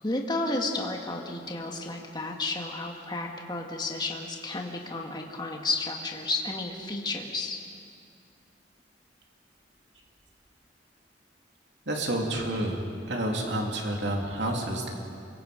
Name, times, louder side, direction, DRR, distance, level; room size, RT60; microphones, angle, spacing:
voice 1, 0.0-7.6, left 2 dB, 25° left, 1 dB, 1.9 m, -32 dB
voice 2, 11.8-14.9, right 1 dB, 70° right, 0 dB, 3.3 m, -29 dB
28.5 x 23.5 x 5.3 m, 2.4 s
head